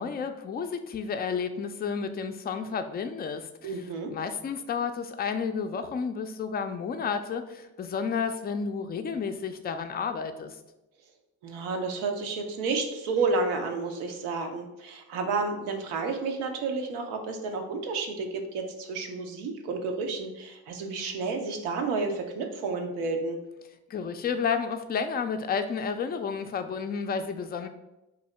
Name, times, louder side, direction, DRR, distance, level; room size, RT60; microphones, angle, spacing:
voice 1, 0.0-3.8 4.1-10.6 23.9-27.7, left 6 dB, 25° left, 7 dB, 0.4 m, -31 dB
voice 2, 3.6-4.1 11.4-23.4, right 4 dB, 75° right, 4 dB, 0.6 m, -31 dB
2.7 x 2.6 x 4.1 m, 0.95 s
hypercardioid pair, 40°, 41 cm